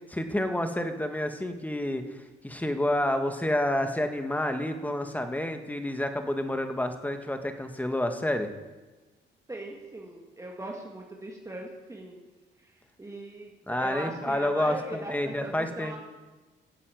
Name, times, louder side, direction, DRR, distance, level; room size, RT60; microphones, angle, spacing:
voice 1, 0.1-2.2 2.4-8.5 13.7-16.0, left 1 dB, 10° left, 7 dB, 1.6 m, -29 dB
voice 2, 9.5-12.2 12.6-16.0, right 1 dB, 15° right, 0 dB, 2.1 m, -40 dB
14.5 x 8.2 x 7.8 m, 1.2 s
cardioid pair, 90°, 20 cm